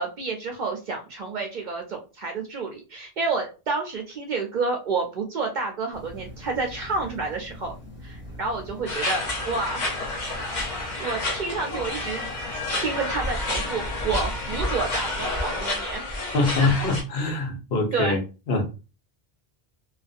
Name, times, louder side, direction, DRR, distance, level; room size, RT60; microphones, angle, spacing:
voice 1, 0.0-7.7 8.0-9.9 10.4-12.2 12.8-16.0 17.9-18.2, right 4 dB, 55° right, 2 dB, 0.6 m, -29 dB
sound 1, 5.9-15.3, equal, 15° left, 0.7 m, -42 dB
sound 2, 8.9-17.0, left 2 dB, 50° left, 0.8 m, -29 dB
voice 2, 16.3-18.2 18.5-18.6, left 3 dB, 75° left, 3 dB, 1.0 m, -23 dB
2.5 x 2.2 x 2.4 m, 0.31 s
omnidirectional pair, 1.0 m